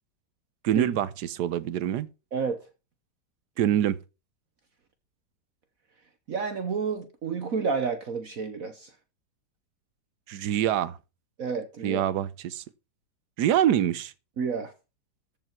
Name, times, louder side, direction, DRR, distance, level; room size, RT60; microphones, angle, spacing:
voice 1, 0.6-2.1 3.6-4.0 10.3-11.0 11.8-12.6 13.4-14.1, right 11 dB, 70° right, 1.3 m, -25 dB
voice 2, 6.3-8.9 11.4-12.0 14.4-14.7, right 5 dB, 55° right, 1.4 m, -30 dB
14.5 x 5.6 x 5.9 m
omnidirectional pair, 1.9 m